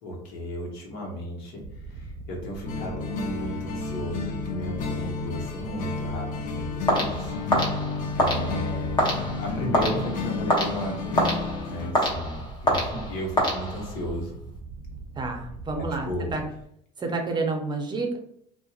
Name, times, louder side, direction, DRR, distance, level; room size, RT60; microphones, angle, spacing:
voice 1, 0.0-7.3 8.1-9.1 9.4-11.3 11.6-14.3 15.7-16.3, equal, 70° left, -1 dB, 0.9 m, -34 dB
sound 1, 1.6-16.6, right 3 dB, 80° right, 0.5 m, -41 dB
sound 2, 2.6-11.9, left 4 dB, 55° left, 0.5 m, -31 dB
sound 3, 6.9-14.1, equal, 30° left, 0.8 m, -27 dB
voice 2, 15.2-16.5 17.0-18.2, right 3 dB, 25° right, 3 dB, 0.5 m, -29 dB
2.7 x 2.1 x 2.3 m, 0.69 s
supercardioid pair, 95°, 17 cm